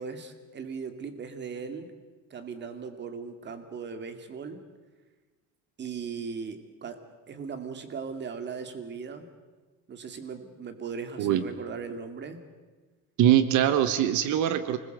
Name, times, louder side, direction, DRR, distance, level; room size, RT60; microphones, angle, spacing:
voice 1, 0.0-1.9 2.3-4.6 5.8-7.0 7.3-9.3 9.9-12.4, right 5 dB, 35° right, 9 dB, 2.4 m, -38 dB
voice 2, 13.2-14.8, right 11 dB, 85° right, 12 dB, 1.3 m, -22 dB
25.5 x 20.5 x 8.0 m, 1.3 s
cardioid pair, 160°, 30 cm